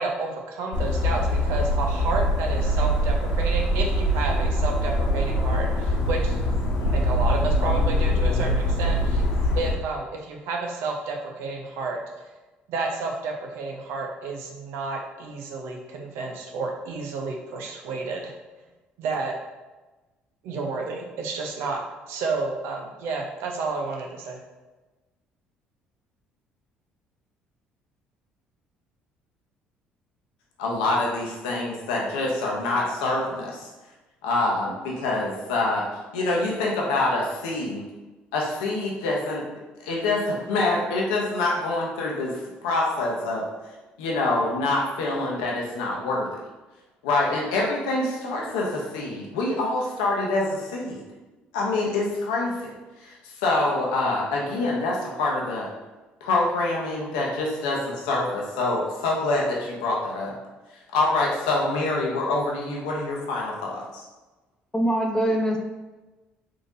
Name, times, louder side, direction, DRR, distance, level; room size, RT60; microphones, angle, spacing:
voice 1, 0.0-6.4 6.8-9.2 9.6-12.0 12.7-18.3 19.0-19.3 20.4-21.8 22.1-24.4, right 3 dB, 75° right, 1 dB, 0.6 m, -31 dB
sound 1, 0.7-9.7, equal, 60° left, 0.9 m, -23 dB
voice 2, 30.6-33.7 34.2-35.9 36.1-37.8 38.3-39.4 39.8-43.5 44.0-46.3 47.0-51.0 51.5-55.7 56.2-60.4 60.7-64.0, left 2 dB, 85° left, -2 dB, 0.7 m, -26 dB
voice 3, 64.7-65.6, right 1 dB, 15° left, 1 dB, 0.5 m, -23 dB
3.7 x 2.6 x 2.6 m, 1.2 s
hypercardioid pair, 65°, 4 cm